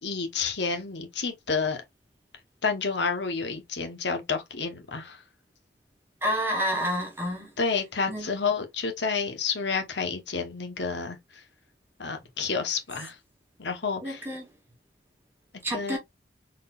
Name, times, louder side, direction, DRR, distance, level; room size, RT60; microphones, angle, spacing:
voice 1, 0.0-1.8 2.6-5.2 7.6-11.2 12.0-13.2 13.6-14.2 15.7-16.0, left 5 dB, 75° left, 1.1 m, -29 dB
voice 2, 6.2-7.5 8.1-8.3 14.0-14.5 15.6-16.0, equal, 10° right, 1.2 m, -29 dB
4.0 x 3.8 x 2.4 m
head